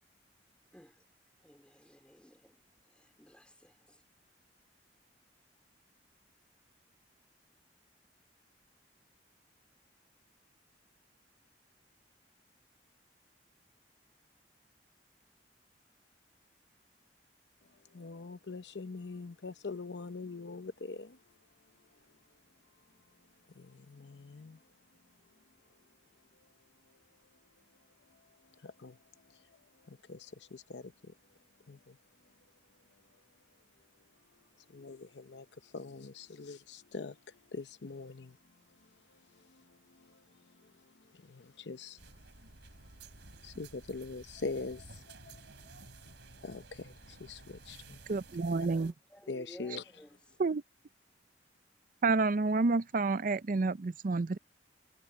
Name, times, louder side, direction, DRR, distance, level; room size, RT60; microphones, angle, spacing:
voice 1, 0.7-1.0 1.4-4.0 48.7-50.5, equal, 5° left, 3.0 m, -56 dB
voice 2, 17.9-21.2 23.6-24.6 28.6-29.0 29.9-30.9 31.7-31.9 34.7-37.2 37.5-38.4 39.5-39.6 40.0-40.1 41.3-42.0 43.4-45.4 46.4-48.0 49.3-49.8, left 3 dB, 70° left, 0.8 m, -43 dB
sound 1, 42.0-48.9, right 3 dB, 80° right, 3.0 m, -54 dB
voice 3, 48.1-48.9 50.4-50.6 52.0-54.4, right 3 dB, 50° right, 0.5 m, -29 dB
head